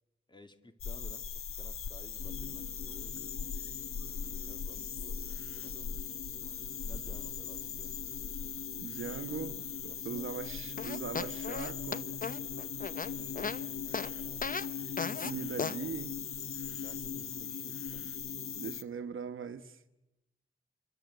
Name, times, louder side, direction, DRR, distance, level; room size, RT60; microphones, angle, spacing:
voice 1, 0.3-3.4 4.0-8.0 9.3-9.4 9.8-10.7 13.1-13.6 13.8-14.6 16.6-18.0 18.3-18.8, left 1 dB, 20° left, 2.5 m, -56 dB
sound 1, 0.8-18.8, left 7 dB, 80° left, 1.1 m, -40 dB
sound 2, 2.2-18.8, left 6 dB, 55° left, 1.6 m, -45 dB
voice 2, 8.8-12.1 15.2-16.2 18.5-19.8, right 6 dB, 70° right, 1.2 m, -40 dB
sound 3, 10.8-13.6 13.9-14.1 14.4-14.7 15.0-15.3 15.6-15.8, left 5 dB, 40° left, 1.0 m, -36 dB
27.5 x 23.5 x 8.0 m
wide cardioid pair, 95°, 21 cm